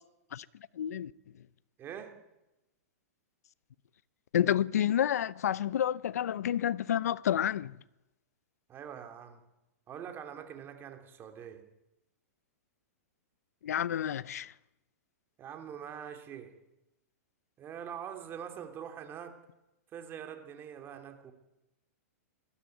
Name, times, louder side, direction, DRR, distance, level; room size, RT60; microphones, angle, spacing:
voice 1, 0.8-1.1 4.3-7.7 13.6-14.5, left 10 dB, 80° left, 0.7 m, -29 dB
voice 2, 1.8-2.1 8.7-9.4 9.9-11.6 15.4-16.5 17.6-19.4 19.9-21.3, right 8 dB, 25° right, 3.0 m, -44 dB
20.5 x 14.0 x 9.4 m
hypercardioid pair, 135°, 8 cm